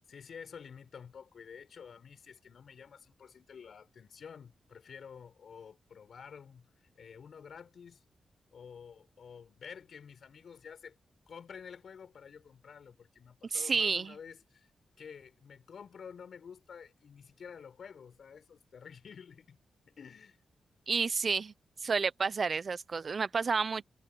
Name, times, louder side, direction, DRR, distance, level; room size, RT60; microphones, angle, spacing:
voice 1, 0.1-6.7 6.9-8.0 8.5-11.0 11.3-14.7 15.0-19.6 19.8-20.4, left 6 dB, 65° left, 6.5 m, -50 dB
voice 2, 13.5-14.1 20.9-21.5 21.8-23.8, right 5 dB, 45° right, 0.7 m, -30 dB
wide cardioid pair, 115°, 0 cm